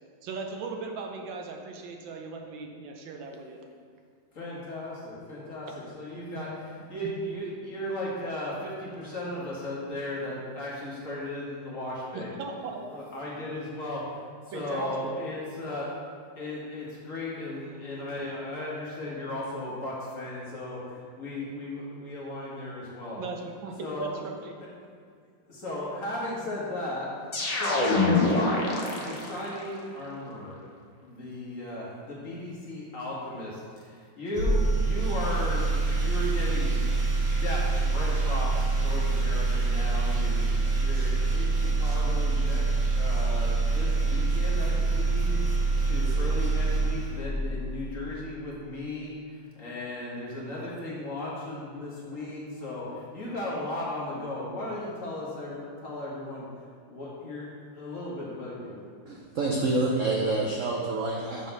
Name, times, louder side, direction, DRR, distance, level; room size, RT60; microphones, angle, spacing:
voice 1, 0.2-3.6 12.1-12.9 14.5-15.1 15.4-15.5 23.1-24.5, right 3 dB, 80° right, 2 dB, 1.5 m, -38 dB
voice 2, 4.3-5.7 5.9-6.5 6.9-12.3 12.9-15.9 16.3-23.2 23.8-24.1 25.5-27.9 28.2-30.6 31.0-42.7 43.0-45.4 45.8-56.5 56.9-58.8, left 1 dB, 45° left, -5 dB, 1.6 m, -36 dB
sound 1, 27.3-29.6, left 3 dB, 65° left, 0.3 m, -25 dB
sound 2, 34.3-47.7, right 3 dB, 45° right, 1.0 m, -25 dB
voice 3, 59.1-61.5, right 2 dB, 65° right, -2 dB, 0.7 m, -27 dB
6.9 x 4.0 x 5.3 m, 2.1 s
omnidirectional pair, 2.0 m